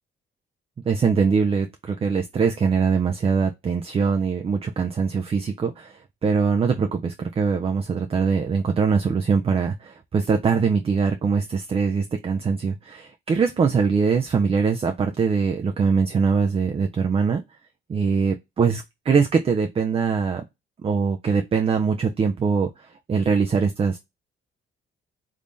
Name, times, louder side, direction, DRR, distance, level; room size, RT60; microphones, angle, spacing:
voice 1, 0.9-17.4 17.9-20.4 20.8-24.0, right 5 dB, 30° right, 0.4 m, -22 dB
3.6 x 3.2 x 2.6 m
cardioid pair, 90°, 20 cm